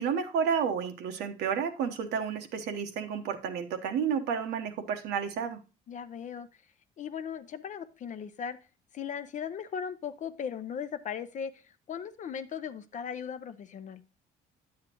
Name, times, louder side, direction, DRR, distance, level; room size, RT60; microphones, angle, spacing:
voice 1, 0.0-5.6, right 7 dB, 80° right, 6 dB, 1.1 m, -31 dB
voice 2, 5.9-6.5 7.0-8.6 8.9-14.0, left 7 dB, 45° left, 10 dB, 0.6 m, -38 dB
9.9 x 7.4 x 2.9 m, 0.30 s
cardioid pair, 110°, 17 cm